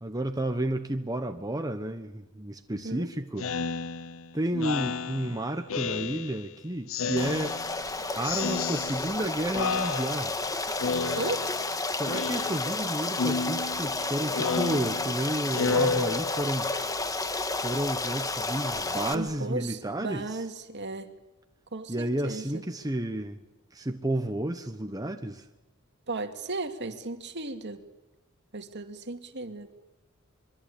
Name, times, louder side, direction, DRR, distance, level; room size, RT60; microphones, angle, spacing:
voice 1, 0.0-3.5 4.3-7.5 8.2-10.4 11.9-16.7 17.6-20.4 21.9-23.4 23.7-25.5, right 1 dB, 15° right, 1.2 m, -31 dB
voice 2, 2.7-3.1 11.2-11.5 19.1-21.1 21.7-22.6 26.1-27.8 28.5-29.7, right 2 dB, 55° right, 2.4 m, -35 dB
Speech synthesizer, 3.4-6.5 6.9-7.9 8.2-9.3 9.5-10.5 10.8-11.7 12.0-12.8 13.1-16.7, left 4 dB, 70° left, 0.9 m, -32 dB
Stream, 7.2-19.1, left 3 dB, 15° left, 1.7 m, -31 dB
26.0 x 23.5 x 8.7 m
head